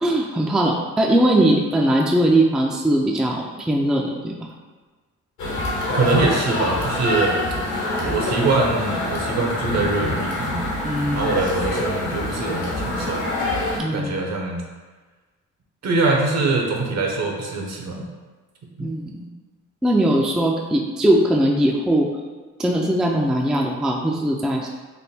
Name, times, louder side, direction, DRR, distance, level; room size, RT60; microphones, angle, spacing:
voice 1, 0.0-4.5 10.8-11.3 13.7-14.2 18.8-19.3 19.8-22.1 22.6-24.7, right 1 dB, ahead, 0 dB, 0.3 m, -20 dB
sound 1, 5.4-13.8, left 1 dB, 80° left, 1.1 m, -25 dB
voice 2, 5.9-7.4 8.0-10.7 11.1-13.2 13.9-14.6 15.8-18.1 18.8-18.9, right 3 dB, 60° right, 0 dB, 0.8 m, -23 dB
3.4 x 2.1 x 4.1 m, 1.3 s
cardioid pair, 90°, 30 cm